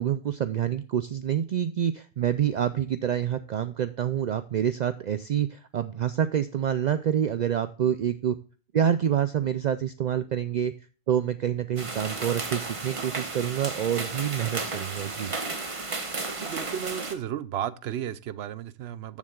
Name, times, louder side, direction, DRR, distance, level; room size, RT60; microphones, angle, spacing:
voice 1, 0.0-8.4 8.7-10.7 11.1-15.3, right 9 dB, 55° right, 0.5 m, -27 dB
sound 1, 11.8-17.1, right 3 dB, 35° right, 1.0 m, -33 dB
voice 2, 16.4-19.2, right 10 dB, 90° right, 0.9 m, -34 dB
14.0 x 7.2 x 2.3 m
omnidirectional pair, 1.0 m